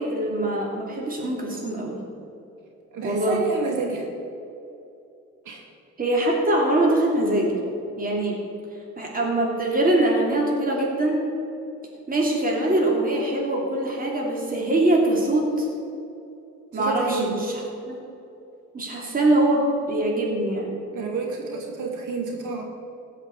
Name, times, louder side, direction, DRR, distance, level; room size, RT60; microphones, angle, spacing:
voice 1, 0.0-2.0 3.0-3.4 6.0-7.5 8.0-8.4 9.0-11.2 12.1-15.7 16.7-17.6 17.9-18.0 18.7-20.8, right 1 dB, 30° right, -2 dB, 2.8 m, -23 dB
voice 2, 2.9-4.1 5.4-5.6 16.7-17.3 20.9-22.6, right 4 dB, 85° right, 1 dB, 2.6 m, -29 dB
16.0 x 5.9 x 8.5 m, 2.7 s
cardioid pair, 90°, 30 cm